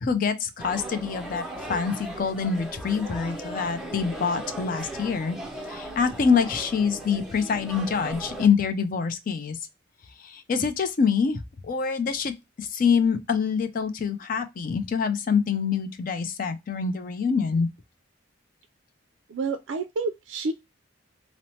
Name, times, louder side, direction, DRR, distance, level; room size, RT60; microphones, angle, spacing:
voice 1, 0.0-5.4 5.7-9.6 10.2-11.4 11.6-17.7, left 6 dB, 45° left, 0.4 m, -25 dB
sound 1, 0.6-8.5, right 1 dB, 5° right, 0.5 m, -37 dB
voice 2, 19.3-20.5, right 3 dB, 70° right, 0.3 m, -29 dB
3.0 x 2.0 x 2.7 m
head